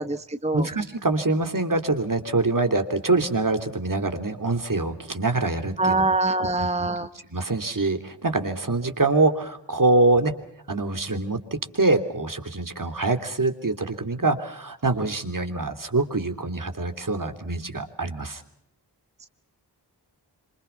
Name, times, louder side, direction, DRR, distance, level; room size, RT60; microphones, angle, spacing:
voice 1, 0.0-0.7 5.8-7.1, right 2 dB, 15° right, 9 dB, 1.0 m, -24 dB
voice 2, 0.5-6.1 6.6-6.7 7.3-10.3 10.7-11.4 11.7-18.4, right 2 dB, 50° right, 6 dB, 3.3 m, -24 dB
27.5 x 26.0 x 5.9 m, 0.75 s
wide cardioid pair, 60°, 41 cm